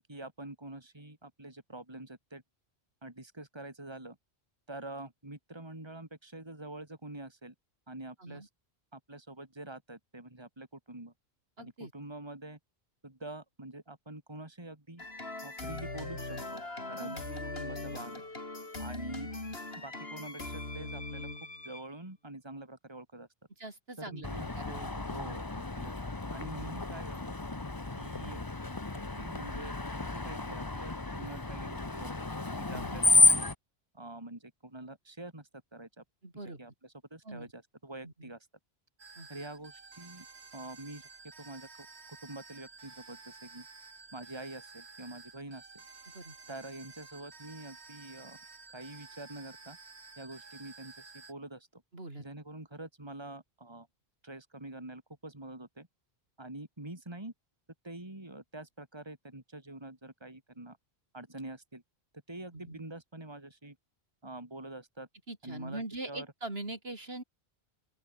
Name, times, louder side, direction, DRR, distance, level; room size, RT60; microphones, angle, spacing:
voice 1, 0.0-2.4 3.0-4.2 4.7-7.5 7.9-8.5 8.9-11.1 11.6-12.6 13.0-15.0 15.4-16.6 16.9-18.2 18.8-19.3 19.8-21.3 21.6-23.3 24.0-24.6 25.1-26.0 26.3-27.4 28.0-28.4 28.9-29.7 30.0-32.3 32.6-33.5 33.9-36.0 36.6-38.5 39.3-40.3 40.5-41.1 41.4-41.7 42.2-43.7 44.1-45.7 46.5-48.4 48.7-49.8 50.2-51.8 52.2-53.9 54.2-55.9 56.4-57.3 57.8-60.8 61.1-61.8 62.3-63.8 64.2-65.1 65.4-66.3, right 2 dB, 25° right, 3.2 m, -46 dB
voice 2, 11.6-11.9 17.0-17.3 23.6-24.3 24.6-25.2 32.7-33.0 36.2-36.6 37.2-37.5 38.0-38.3 39.2-39.3 46.1-46.3 51.9-52.2 62.5-62.8 65.3-67.2, right 2 dB, 70° right, 4.5 m, -42 dB
sound 1, 15.0-21.9, left 2 dB, 70° left, 4.3 m, -40 dB
Screech, 24.2-33.5, left 2 dB, 20° left, 1.1 m, -31 dB
sound 2, 39.0-51.3, right 4 dB, 90° right, 2.3 m, -52 dB
open air
omnidirectional pair, 1.1 m